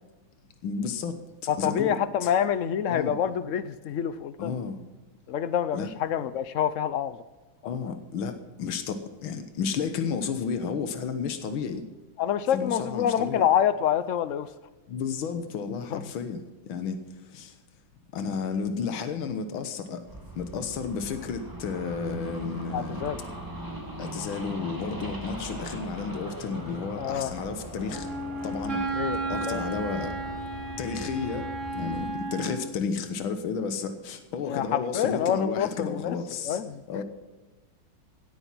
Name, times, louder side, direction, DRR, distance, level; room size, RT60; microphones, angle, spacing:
voice 1, 0.6-2.3 2.9-3.2 4.4-4.8 5.7-5.9 7.7-11.8 12.5-13.4 14.9-17.0 17.3-17.6 18.1-20.0 20.4-23.0 24.0-28.1 28.4-28.8 29.3-30.2 30.8-36.6 36.9-37.0, left 5 dB, 90° left, 1.9 m, -32 dB
voice 2, 1.5-4.5 5.3-7.2 7.6-7.9 12.2-14.5 15.9-16.0 22.7-23.2 27.0-27.3 29.0-29.8 34.4-36.2 36.4-36.8, left 9 dB, 70° left, 0.7 m, -27 dB
sound 1, 20.0-32.1, equal, 10° right, 2.0 m, -39 dB
Wind instrument woodwind instrument, 27.9-32.7, right 3 dB, 40° right, 2.5 m, -33 dB
17.0 x 8.8 x 6.0 m
omnidirectional pair, 2.2 m